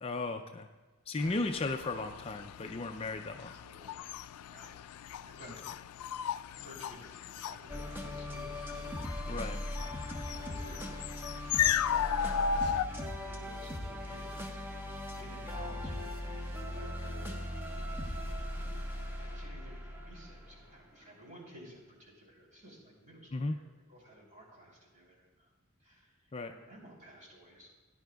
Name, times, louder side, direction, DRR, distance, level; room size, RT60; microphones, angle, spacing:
voice 1, 0.0-0.7 1.1-3.5 9.3-9.6 23.3-23.6 26.3-26.5, left 3 dB, 25° left, 5 dB, 0.4 m, -35 dB
voice 2, 1.1-1.5 3.6-4.1 4.4-4.7 5.2-5.9 6.6-8.9 9.2-10.0 10.3-11.2 12.4-17.4 19.3-25.5 25.8-27.7, equal, 35° right, -3 dB, 3.5 m, -54 dB
sound 1, 1.2-12.8, left 8 dB, 85° left, 0.3 m, -36 dB
sound 2, 7.7-20.9, left 1 dB, 10° right, 1.0 m, -39 dB
17.0 x 10.0 x 2.3 m, 1.3 s
head